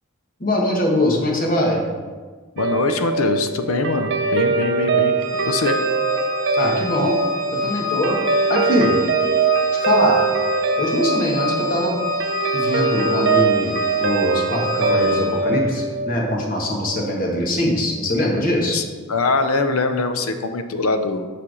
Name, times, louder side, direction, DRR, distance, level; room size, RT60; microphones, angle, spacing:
voice 1, 0.4-1.8 6.6-7.2 7.6-8.2 8.5-8.9 9.7-10.2 10.8-12.0 12.5-18.8, left 1 dB, 40° left, 0 dB, 1.3 m, -22 dB
voice 2, 2.6-5.1 5.4-5.8 18.7-21.3, left 3 dB, 90° left, 8 dB, 0.6 m, -22 dB
Guitar, 2.6-17.1, right 4 dB, 55° right, 0.4 m, -22 dB
Organ, 5.2-15.6, left 5 dB, 20° right, 1.2 m, -29 dB
8.5 x 3.4 x 6.2 m, 1.5 s
head